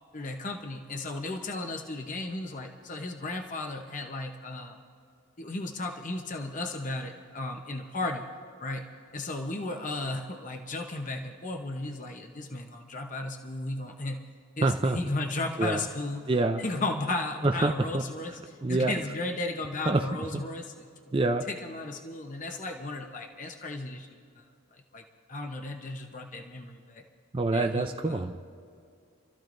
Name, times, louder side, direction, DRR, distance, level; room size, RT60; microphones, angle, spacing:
voice 1, 0.1-4.8 5.4-8.3 8.6-8.8 9.1-14.2 14.6-16.3 16.6-18.4 18.7-20.9 21.5-24.1 24.4-24.5 24.9-27.0 27.5-28.2, left 2 dB, 35° left, 3 dB, 0.9 m, -35 dB
voice 2, 14.6-15.0 15.6-15.9 16.3-16.6 17.4-18.0 18.6-19.0 19.9-20.1 20.3-20.4 21.1-21.5 27.3-28.4, right 2 dB, 25° right, 5 dB, 0.4 m, -26 dB
28.0 x 14.0 x 2.6 m, 2.4 s
head